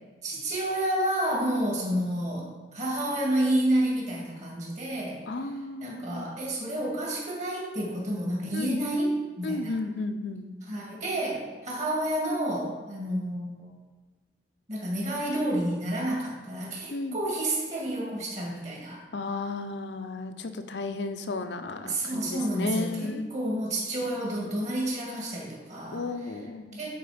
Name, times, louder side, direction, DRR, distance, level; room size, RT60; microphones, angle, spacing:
voice 1, 0.2-5.3 5.8-9.8 10.7-13.7 14.7-19.0 21.9-26.0 26.7-27.0, right 1 dB, 40° right, -3 dB, 2.3 m, -30 dB
voice 2, 5.3-6.3 8.5-8.8 9.4-10.5 16.9-17.2 19.1-23.2 25.9-26.9, left 3 dB, 75° left, 8 dB, 0.7 m, -33 dB
8.7 x 4.7 x 5.1 m, 1.3 s
head